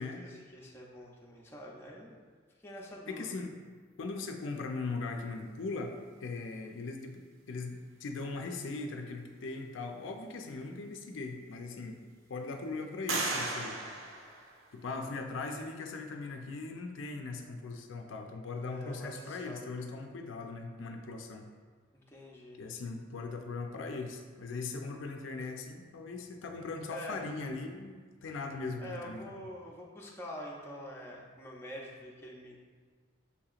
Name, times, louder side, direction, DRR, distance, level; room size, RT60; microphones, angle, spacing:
voice 1, 0.0-2.2 2.6-3.3 18.6-19.9 21.9-22.6 26.9-27.2 28.8-32.6, equal, 10° left, -3 dB, 0.5 m, -46 dB
voice 2, 3.1-3.5 4.0-7.2 7.5-12.0 12.3-13.8 14.7-21.5 22.6-29.4, left 3 dB, 70° left, 4 dB, 0.4 m, -39 dB
sound 1, 10.8-10.9 11.5-12.2 13.1-15.0, right 2 dB, 85° right, 0.6 m, -37 dB
6.8 x 2.8 x 2.4 m, 1.5 s
head